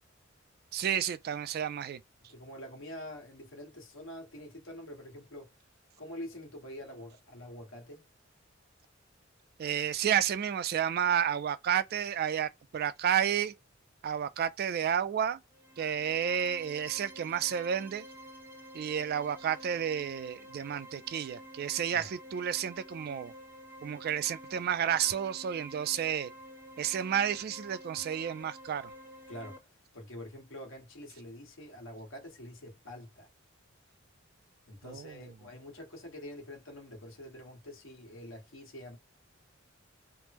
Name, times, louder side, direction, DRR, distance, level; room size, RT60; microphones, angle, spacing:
voice 1, 0.7-2.0 9.6-13.5 14.0-15.4 15.8-18.0 18.7-23.3 23.8-26.3 26.8-28.9 34.9-35.0, right 9 dB, 50° right, 0.3 m, -31 dB
voice 2, 2.3-5.5 6.0-8.1 21.9-22.1 29.3-29.7 29.9-33.3 34.7-39.0, left 1 dB, 80° left, 1.3 m, -46 dB
sound 1, 15.5-29.6, equal, 10° right, 0.6 m, -50 dB
3.4 x 2.0 x 2.9 m
head